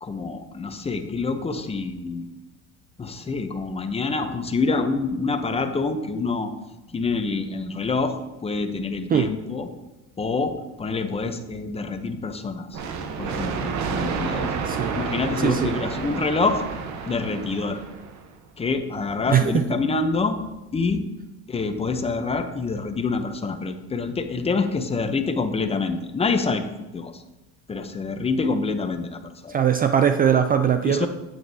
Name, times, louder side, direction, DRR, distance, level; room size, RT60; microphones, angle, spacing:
voice 1, 0.0-2.3 3.0-6.5 6.9-9.7 10.2-12.8 13.2-14.5 14.9-16.6 17.1-17.8 18.6-20.4 20.7-21.0 21.5-26.6 26.9-27.1 27.7-29.6 30.8-31.1, left 4 dB, 20° left, 8 dB, 0.7 m, -26 dB
sound 1, 12.7-18.3, right 5 dB, 60° right, 1.0 m, -30 dB
voice 2, 14.7-15.0 15.4-15.7 19.3-19.6 29.5-31.1, right 8 dB, 30° right, 8 dB, 0.4 m, -20 dB
9.1 x 8.9 x 2.8 m, 1.0 s
cardioid pair, 125°, 32 cm